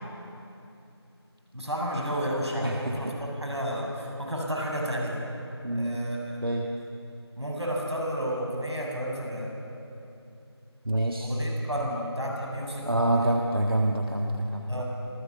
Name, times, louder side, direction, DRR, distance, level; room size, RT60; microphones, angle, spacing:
voice 1, 1.5-5.2 5.7-6.4 7.4-9.5 11.2-13.4 14.7-14.8, equal, 80° right, -1 dB, 7.5 m, -31 dB
voice 2, 2.6-3.1 5.6-6.0 6.4-6.8 10.8-11.3 12.8-14.8, right 1 dB, 55° right, 1 dB, 1.6 m, -27 dB
27.0 x 18.0 x 7.2 m, 2.7 s
figure-of-eight pair, 170°, 14 cm